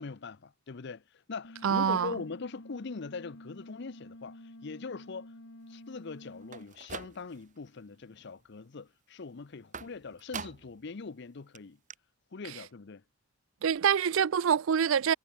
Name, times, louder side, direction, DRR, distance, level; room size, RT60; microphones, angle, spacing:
voice 1, 0.0-5.3 5.7-11.8 12.3-13.0, left 4 dB, 60° left, 0.7 m, -42 dB
sound 1, 1.4-6.6, left 1 dB, 75° left, 3.0 m, -50 dB
voice 2, 1.6-2.1 13.6-15.1, right 7 dB, 85° right, 0.5 m, -25 dB
sound 2, 6.4-7.6 8.0-8.5 9.7-10.8 11.2-11.3 11.5-11.6 11.9-12.0, right 5 dB, 40° right, 2.6 m, -44 dB
head